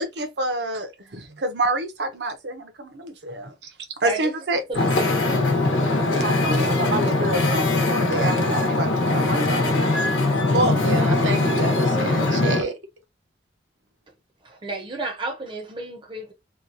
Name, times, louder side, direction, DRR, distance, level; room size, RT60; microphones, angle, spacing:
voice 1, 0.0-3.7 4.0-5.0 6.1-10.0 10.5-11.1, right 1 dB, 60° right, 0.7 m, -28 dB
voice 2, 4.0-5.2 14.4-16.3, right 3 dB, 25° right, 0.6 m, -32 dB
Wind / Ocean, 4.7-12.6, left 2 dB, 85° left, 0.9 m, -21 dB
voice 3, 10.8-12.7, right 2 dB, 85° right, 0.9 m, -29 dB
2.9 x 2.2 x 2.6 m
head